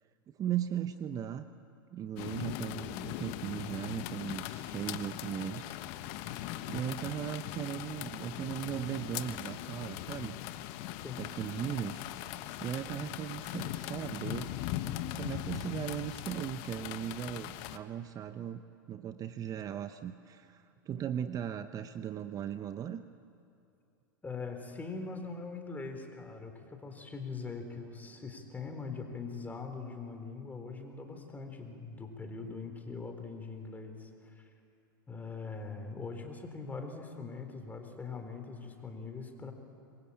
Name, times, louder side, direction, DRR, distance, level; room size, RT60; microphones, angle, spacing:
voice 1, 0.4-1.5 1.9-5.8 6.2-10.4 11.2-12.0 12.6-14.5 15.1-23.0, right 10 dB, 30° right, 11 dB, 0.8 m, -38 dB
sound 1, 2.2-17.8, left 13 dB, 50° left, 1.2 m, -40 dB
voice 2, 24.2-34.4 35.1-39.5, left 4 dB, 15° left, 5 dB, 4.0 m, -42 dB
26.0 x 22.5 x 8.8 m, 2.6 s
hypercardioid pair, 100°, 12 cm